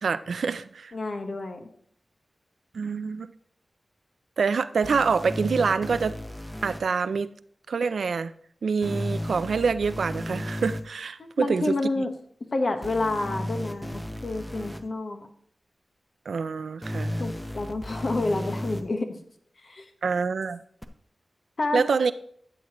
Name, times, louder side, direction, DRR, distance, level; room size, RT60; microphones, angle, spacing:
voice 1, 0.0-0.9 2.7-3.3 4.4-6.2 6.6-7.3 7.7-8.3 8.6-11.6 16.3-17.2 20.0-20.6 21.7-22.1, right 5 dB, 90° right, 0.3 m, -26 dB
voice 2, 0.9-1.7 11.2-12.1 12.5-15.3 17.2-19.2 19.6-19.9 21.6-21.8, left 2 dB, 60° left, 1.2 m, -29 dB
sound 1, 4.8-6.8 8.8-10.8 12.8-14.8 16.8-18.8 20.8-20.9, left 1 dB, 5° left, 0.8 m, -34 dB
12.5 x 7.8 x 3.0 m
cardioid pair, 60°, 0 cm